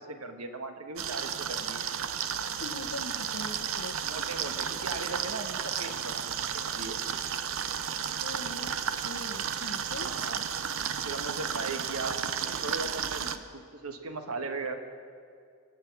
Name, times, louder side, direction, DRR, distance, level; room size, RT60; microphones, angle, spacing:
voice 1, 0.0-1.9 4.0-7.0 10.1-10.4 11.0-12.1 12.6-13.2 13.5-14.7, right 3 dB, 85° right, 6 dB, 1.4 m, -38 dB
sound 1, 1.0-13.4, right 8 dB, 65° right, 0.7 m, -33 dB
voice 2, 2.6-4.0 8.2-10.1 13.2-13.3, left 2 dB, 90° left, 4 dB, 1.0 m, -42 dB
25.5 x 8.6 x 6.0 m, 2.3 s
head